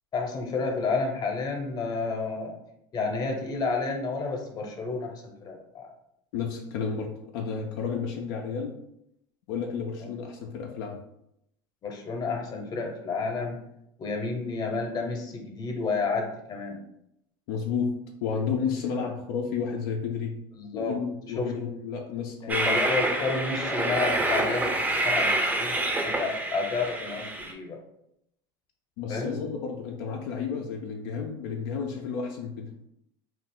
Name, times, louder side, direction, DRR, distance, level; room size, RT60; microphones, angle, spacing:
voice 1, 0.1-2.5 2.9-5.9 11.8-13.6 14.0-16.8 19.0-19.1 20.6-20.9 21.4-21.5 22.4-27.8 29.1-29.4, left 4 dB, 35° left, 2 dB, 0.8 m, -30 dB
voice 2, 6.3-8.8 9.5-11.0 17.5-20.4 20.7-22.8 29.0-32.7, left 6 dB, 75° left, 1 dB, 0.4 m, -31 dB
Train, 22.5-27.5, right 2 dB, 15° right, 0.5 m, -27 dB
2.4 x 2.0 x 3.6 m, 0.79 s
supercardioid pair, 105°, 12 cm